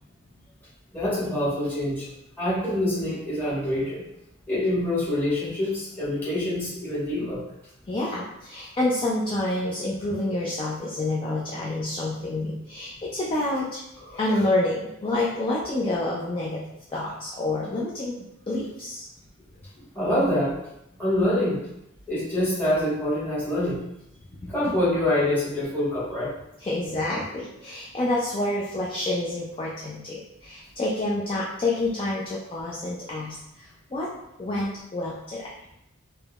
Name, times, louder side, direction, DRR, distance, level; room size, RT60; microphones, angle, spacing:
voice 1, 0.9-2.1 2.4-4.0 4.5-7.4 14.1-14.2 19.9-20.6 21.0-21.6 22.1-23.8 24.4-26.3, left 1 dB, 10° left, -10 dB, 1.2 m, -25 dB
voice 2, 7.9-13.8 14.2-16.6 16.9-19.1 26.6-34.1 34.4-35.5, left 2 dB, 25° left, -4 dB, 0.3 m, -28 dB
3.4 x 2.1 x 2.3 m, 0.83 s
head